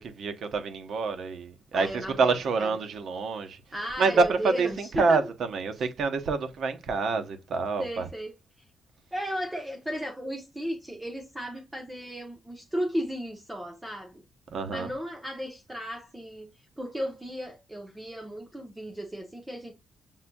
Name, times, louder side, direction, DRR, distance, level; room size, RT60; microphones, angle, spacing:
voice 1, 0.0-3.6 4.0-8.0 14.5-14.9, right 4 dB, 70° right, 0.8 m, -27 dB
voice 2, 1.7-2.8 3.7-5.2 5.8-5.9 7.8-8.3 9.1-14.2 14.7-19.7, equal, 10° right, 0.7 m, -35 dB
7.1 x 2.6 x 2.2 m
wide cardioid pair, 150°, 0 cm